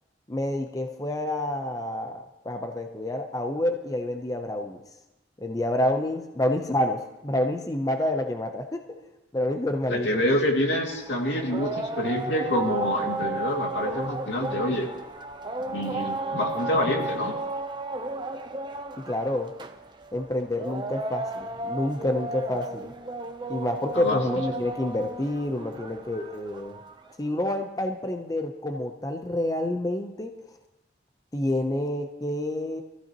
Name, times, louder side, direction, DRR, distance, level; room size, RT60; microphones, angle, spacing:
voice 1, 0.3-4.8 5.4-8.8 9.3-10.2 19.0-19.5 20.1-22.9 23.5-26.8 27.2-30.3 31.3-32.8, left 1 dB, 20° left, 5 dB, 0.7 m, -28 dB
voice 2, 9.9-14.9 15.7-17.3 23.9-24.2, left 1 dB, 80° left, 0 dB, 2.4 m, -27 dB
sound 1, 10.8-27.1, right 2 dB, 25° right, 0.8 m, -34 dB
23.0 x 14.5 x 3.0 m, 1.0 s
head